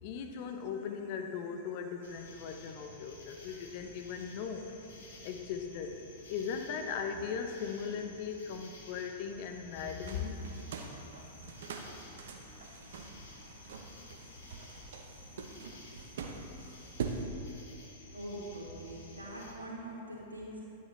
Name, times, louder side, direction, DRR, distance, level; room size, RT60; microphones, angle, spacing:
voice 1, 0.0-4.7 5.2-6.0 6.3-10.6, left 6 dB, 50° left, 5 dB, 0.8 m, -38 dB
sound 1, 2.0-19.5, left 2 dB, 65° left, 1.6 m, -53 dB
sound 2, 10.0-17.2, right 5 dB, 65° right, 0.8 m, -44 dB
voice 2, 18.1-20.6, right 1 dB, 80° right, -5 dB, 2.3 m, -43 dB
10.5 x 9.2 x 3.2 m, 2.8 s
figure-of-eight pair, 100°, 0 cm